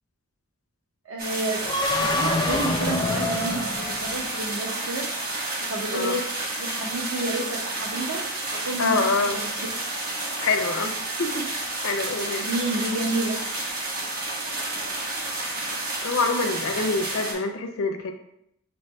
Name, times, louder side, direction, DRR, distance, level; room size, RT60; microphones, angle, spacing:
voice 1, 1.1-1.6 2.0-5.1 5.4-6.3 6.6-8.2 8.5-9.5 12.4-13.4, right 1 dB, 80° right, 3 dB, 0.7 m, -30 dB
sound 1, 1.2-17.3, right 2 dB, 40° right, 0.9 m, -30 dB
sound 2, 1.6-4.6, left 2 dB, 20° left, 0.4 m, -27 dB
voice 2, 8.8-9.4 10.4-10.9 11.2-12.5 16.0-18.1, left 3 dB, 75° left, 5 dB, 0.6 m, -26 dB
7.0 x 3.0 x 2.3 m, 0.76 s
head